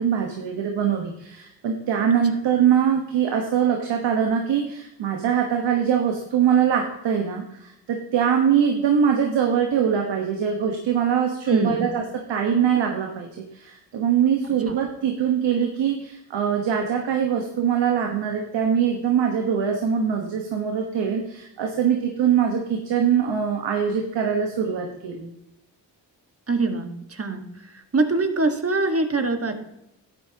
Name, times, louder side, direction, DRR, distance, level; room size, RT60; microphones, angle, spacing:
voice 1, 0.0-25.3, right 8 dB, 90° right, 2 dB, 1.3 m, -23 dB
voice 2, 11.5-11.8 26.5-27.4 27.9-29.6, right 3 dB, 35° right, 6 dB, 1.6 m, -23 dB
12.0 x 9.3 x 2.9 m, 0.83 s
cardioid pair, 60°, 42 cm